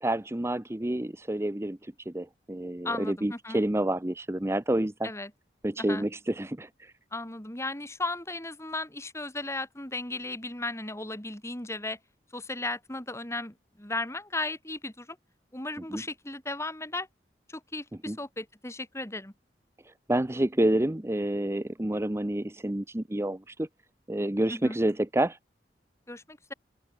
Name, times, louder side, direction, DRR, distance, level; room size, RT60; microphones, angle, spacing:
voice 1, 0.0-5.1 5.6-6.9 15.8-16.0 18.1-18.2 19.8-23.7 24.1-25.4, right 1 dB, 15° right, 0.8 m, -29 dB
voice 2, 2.8-3.6 5.0-5.3 5.8-6.1 7.1-12.0 12.3-15.1 15.5-17.1 17.5-19.3 24.5-24.8 26.1-26.5, left 2 dB, 15° left, 4.5 m, -35 dB
open air
head